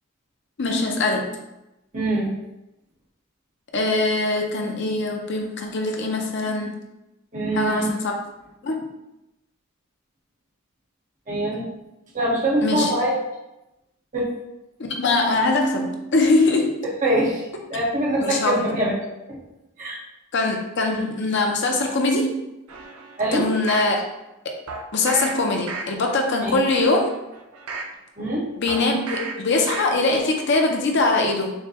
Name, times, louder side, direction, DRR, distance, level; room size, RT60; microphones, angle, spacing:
voice 1, 0.6-1.3 3.7-6.8 7.5-8.2 8.6-8.9 12.6-12.9 14.8-16.9 18.2-18.5 20.3-22.3 23.3-24.0 24.9-27.1 28.6-31.5, left 2 dB, 55° left, 2 dB, 0.6 m, -22 dB
voice 2, 1.9-2.3 7.3-7.9 11.3-11.7 12.1-13.2 14.1-14.3 17.0-17.4 17.7-18.9 19.3-19.4 19.8-20.0 23.2-23.5 26.4-26.6 28.2-28.4, right 1 dB, 35° right, -5 dB, 1.2 m, -23 dB
sound 1, 22.7-23.9 24.7-25.3 25.7-26.2 26.6-27.9 28.7-29.3 29.7-30.2 30.6-30.7, right 3 dB, 85° right, 0.6 m, -34 dB
6.4 x 2.2 x 2.9 m, 0.93 s
head